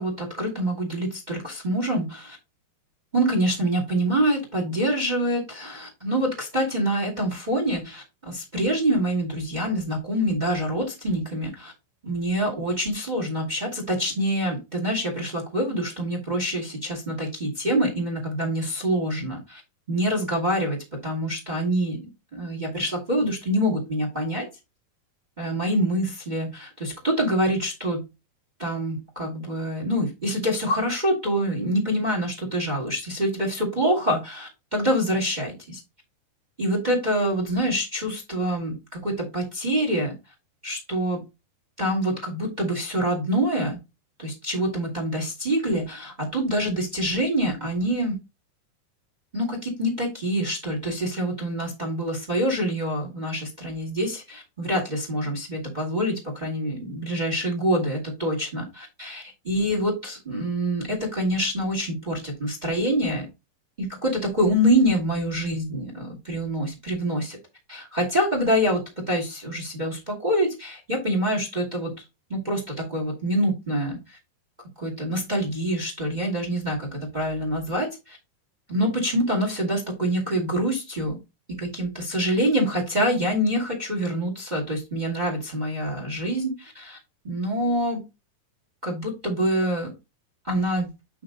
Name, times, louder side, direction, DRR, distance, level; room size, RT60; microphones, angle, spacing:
voice 1, 0.0-2.4 3.1-11.7 12.0-19.6 19.9-24.4 25.4-28.1 28.6-35.8 36.6-40.1 40.6-41.2 41.8-43.8 44.2-48.1 49.3-63.3 63.8-67.4 67.7-71.9 72.3-74.2 74.8-78.2 78.7-81.2 81.5-87.0 87.2-88.0 88.8-89.9 90.4-90.9, equal, 25° right, 1 dB, 0.9 m, -26 dB
8.6 x 3.7 x 3.9 m, 0.25 s
omnidirectional pair, 4.7 m